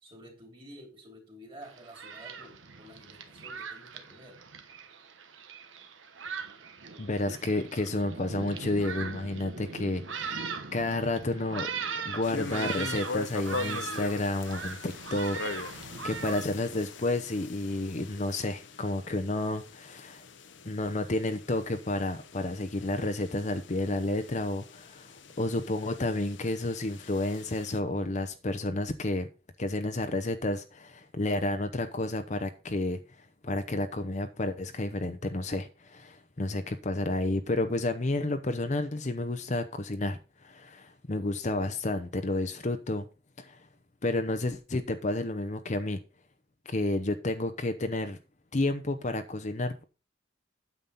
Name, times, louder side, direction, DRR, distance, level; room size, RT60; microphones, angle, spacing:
voice 1, 0.0-4.4, equal, 25° right, 2.9 m, -50 dB
Thunderstorm, 1.6-16.4, right 5 dB, 75° right, 1.2 m, -40 dB
voice 2, 7.0-11.7 12.0-20.2 20.6-29.3 29.6-33.0 33.4-43.1 43.4-43.6 44.0-46.0 46.7-48.2 48.5-49.8, left 2 dB, 40° left, 0.8 m, -31 dB
sound 1, 12.2-27.8, left 3 dB, 65° left, 0.9 m, -42 dB
9.1 x 7.3 x 4.0 m
head